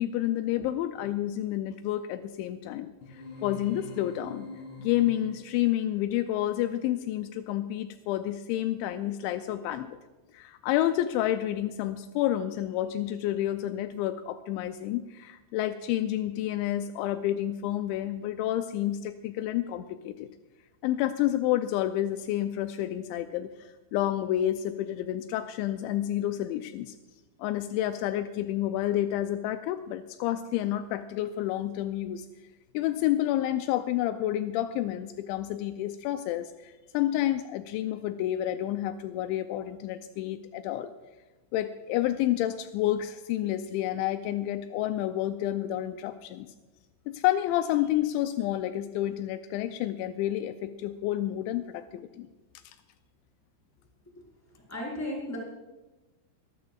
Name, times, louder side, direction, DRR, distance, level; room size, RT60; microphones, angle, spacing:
voice 1, 0.0-2.9 3.4-4.5 4.8-10.0 10.3-20.3 20.8-26.9 27.4-32.3 32.7-40.9 41.5-46.5 47.1-52.3, left 13 dB, 85° left, 9 dB, 2.8 m, -29 dB
sound 1, 3.0-5.6, left 2 dB, 50° left, 4.0 m, -44 dB
voice 2, 54.7-55.4, left 1 dB, 5° left, -5 dB, 4.2 m, -34 dB
24.0 x 13.5 x 2.4 m, 1.1 s
omnidirectional pair, 5.3 m